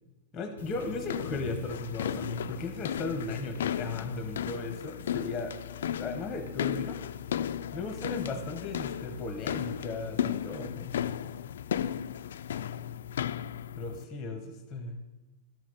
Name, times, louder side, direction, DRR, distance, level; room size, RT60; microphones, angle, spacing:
voice 1, 0.3-5.5 6.0-7.0 7.7-11.0 13.8-15.0, left 3 dB, 10° left, 5 dB, 0.9 m, -36 dB
sound 1, 0.6-14.0, left 9 dB, 90° left, 0.3 m, -35 dB
12.0 x 5.7 x 6.6 m, 1.1 s
supercardioid pair, 170°, 0 cm